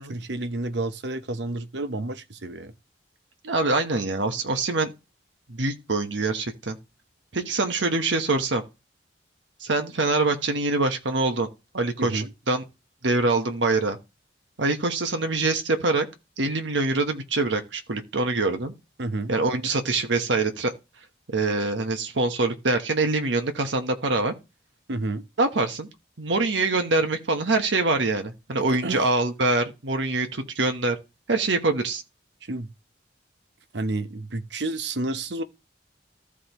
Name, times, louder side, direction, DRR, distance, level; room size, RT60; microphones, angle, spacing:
voice 1, 0.1-2.7 12.0-12.3 19.0-19.3 24.9-25.3 28.7-29.1 32.4-32.7 33.7-35.4, right 2 dB, 70° right, 0.8 m, -30 dB
voice 2, 3.4-4.9 5.5-6.8 7.3-8.6 9.6-11.5 11.7-12.6 13.0-14.0 14.6-16.1 16.4-18.7 19.3-20.7 21.3-24.3 25.4-25.9 26.2-31.0 31.3-32.0, right 3 dB, 85° right, 1.2 m, -24 dB
14.5 x 4.9 x 3.0 m
head